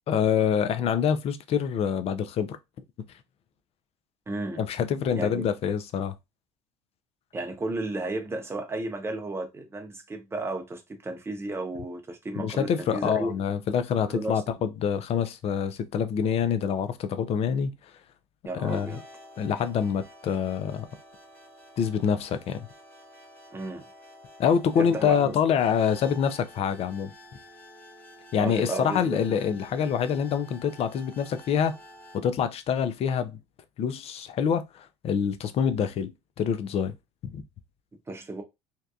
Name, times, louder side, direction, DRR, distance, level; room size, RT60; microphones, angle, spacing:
voice 1, 0.1-2.6 4.6-6.1 12.4-17.7 18.5-19.0 19.4-20.9 21.8-22.7 24.4-27.1 28.3-31.7 32.1-33.3 33.8-36.9 37.3-37.4, left 7 dB, 45° left, 0.5 m, -26 dB
voice 2, 4.3-4.6 5.1-5.5 7.3-13.3 14.0-14.4 18.4-19.0 23.5-23.9 24.8-25.3 28.4-29.2 38.1-38.4, right 2 dB, 15° right, 0.8 m, -33 dB
sound 1, 18.5-32.2, left 1 dB, 15° left, 1.0 m, -50 dB
2.7 x 2.2 x 2.4 m
supercardioid pair, 85°, 15 cm